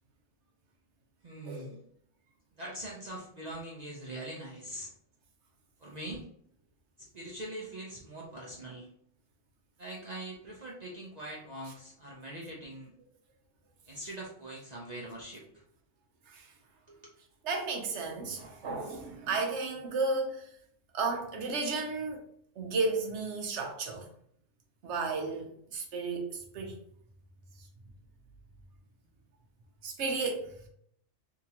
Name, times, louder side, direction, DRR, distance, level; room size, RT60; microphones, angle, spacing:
voice 1, 1.2-1.8 2.6-4.9 5.8-6.3 7.0-8.9 9.8-12.9 13.9-15.6 16.9-17.1, right 1 dB, 45° right, 0.6 m, -42 dB
voice 2, 17.4-20.5 20.9-22.2 22.6-24.0 24.8-26.8 29.8-30.5, right 3 dB, 65° right, 1.0 m, -33 dB
3.5 x 2.9 x 2.8 m
omnidirectional pair, 1.3 m